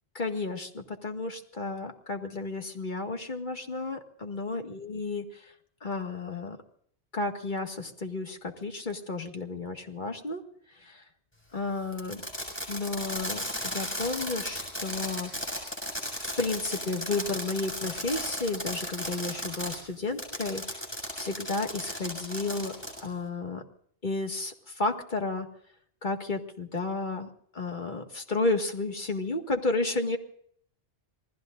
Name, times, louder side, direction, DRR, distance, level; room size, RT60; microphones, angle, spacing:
voice 1, 0.2-5.4 5.8-6.6 7.1-10.4 10.8-11.0 11.5-12.2 12.7-15.3 16.2-20.8 21.2-22.7 23.0-23.6 24.0-25.5 26.0-30.2, left 3 dB, 45° left, 4 dB, 2.1 m, -32 dB
Fireworks, 11.9-19.8 20.2-23.1, equal, 10° left, 6.9 m, -35 dB
28.0 x 19.5 x 2.6 m, 0.62 s
omnidirectional pair, 1.1 m